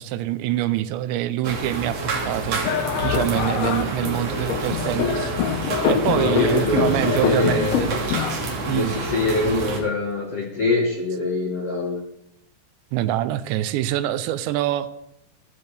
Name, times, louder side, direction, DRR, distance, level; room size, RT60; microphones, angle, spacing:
voice 1, 0.0-2.6 3.0-5.3 5.8-8.1 8.7-9.0 12.9-15.0, right 13 dB, 85° right, 13 dB, 2.8 m, -25 dB
sound 1, 1.4-9.8, right 2 dB, 50° right, 2.1 m, -28 dB
sound 2, 2.6-8.3, left 8 dB, 85° left, 3.3 m, -25 dB
voice 2, 6.1-7.8 8.7-12.0, left 2 dB, 70° left, -1 dB, 1.4 m, -24 dB
15.0 x 13.5 x 3.4 m, 0.79 s
omnidirectional pair, 5.2 m